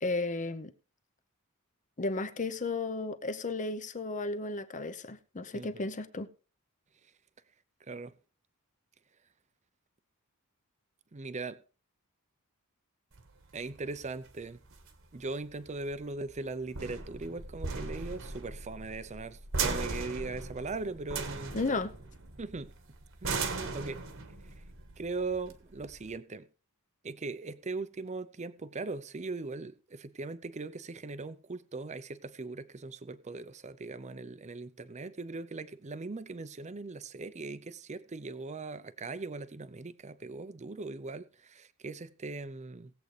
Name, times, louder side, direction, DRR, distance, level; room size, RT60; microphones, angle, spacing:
voice 1, 0.0-0.7 2.0-6.3 21.5-21.9, left 3 dB, 35° left, 0.8 m, -34 dB
voice 2, 7.8-8.1 11.1-11.6 13.5-14.6 15.1-21.6 22.4-23.4 23.7-24.1 24.4-24.6 25.0-26.5 27.0-42.9, right 3 dB, 30° right, 0.6 m, -40 dB
sound 1, 13.1-26.2, right 4 dB, 65° right, 1.4 m, -38 dB
19.0 x 7.9 x 3.3 m
head